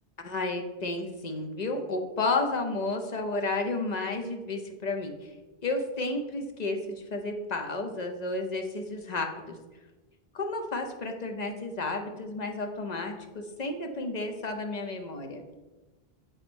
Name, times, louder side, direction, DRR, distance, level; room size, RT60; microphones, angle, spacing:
voice 1, 0.2-5.3 5.6-9.6 10.3-15.5, left 2 dB, 45° left, 5 dB, 0.9 m, -32 dB
7.9 x 3.2 x 6.1 m, 1.2 s
omnidirectional pair, 1.1 m